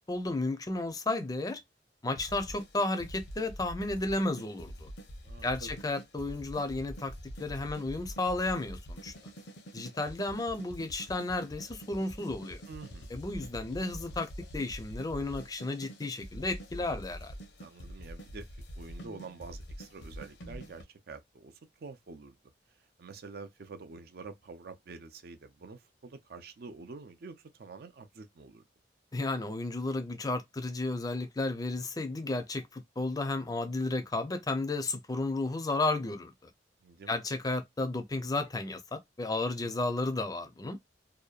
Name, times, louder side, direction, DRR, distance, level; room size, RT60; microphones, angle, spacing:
voice 1, 0.1-1.6 2.0-4.9 5.4-7.1 7.4-9.1 9.7-12.6 13.1-17.3 29.1-36.3 37.1-40.8, left 2 dB, 20° left, 0.5 m, -33 dB
sound 1, 2.2-20.8, equal, 75° left, 0.7 m, -45 dB
voice 2, 5.2-5.8 12.7-13.2 17.6-18.5 18.8-22.4 23.0-28.6 36.8-37.2 39.6-39.7, right 4 dB, 60° right, 0.4 m, -47 dB
2.7 x 2.2 x 2.3 m
head